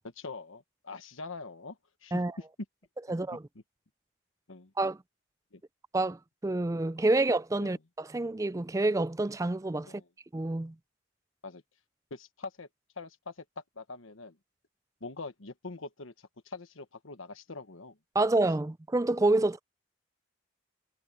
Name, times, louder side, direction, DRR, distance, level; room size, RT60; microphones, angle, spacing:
voice 1, 0.0-2.2 4.5-4.7 5.5-5.6 7.6-7.8 9.8-10.1 11.4-11.6 12.1-12.7 13.0-13.4 13.8-14.4 15.0-18.0, left 3 dB, 75° left, 1.3 m, -44 dB
voice 2, 3.1-3.4 4.8-5.0 5.9-10.0 10.3-10.7 18.1-19.6, right 2 dB, 15° right, 0.3 m, -28 dB
head